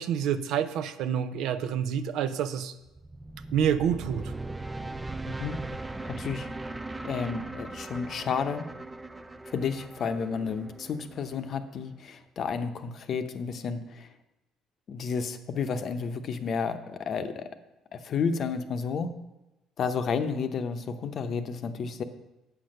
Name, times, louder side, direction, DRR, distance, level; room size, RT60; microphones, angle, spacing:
voice 1, 0.0-2.7 3.5-4.3, right 8 dB, 75° right, 11 dB, 0.6 m, -28 dB
sound 1, 2.9-12.0, right 2 dB, 15° right, 0.4 m, -39 dB
voice 2, 5.3-5.6 6.0-6.5 7.0-8.6 9.5-14.1 14.9-17.4 17.9-19.1 19.8-22.0, left 5 dB, 50° left, 9 dB, 0.8 m, -31 dB
8.2 x 6.0 x 6.5 m, 0.98 s
cardioid pair, 110°, 0 cm